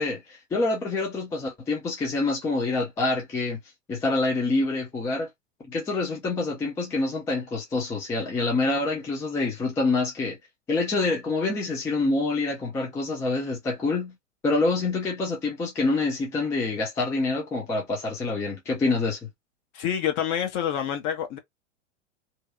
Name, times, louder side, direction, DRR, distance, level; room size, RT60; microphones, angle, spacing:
voice 1, 0.0-3.6 3.9-5.3 5.7-10.4 10.7-14.1 14.4-19.3, left 3 dB, 10° left, 0.4 m, -26 dB
voice 2, 19.7-21.4, left 9 dB, 30° left, 0.7 m, -27 dB
2.7 x 2.2 x 2.4 m
figure-of-eight pair, 90°, 37 cm